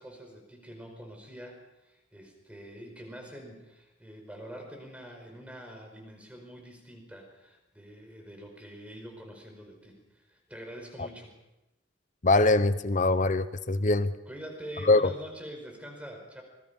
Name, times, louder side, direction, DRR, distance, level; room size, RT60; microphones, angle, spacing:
voice 1, 0.0-11.3 14.3-16.4, equal, 5° right, 2 dB, 5.0 m, -45 dB
voice 2, 12.2-14.1 14.9-15.1, left 2 dB, 40° left, 13 dB, 0.9 m, -23 dB
26.0 x 21.5 x 5.4 m, 0.96 s
head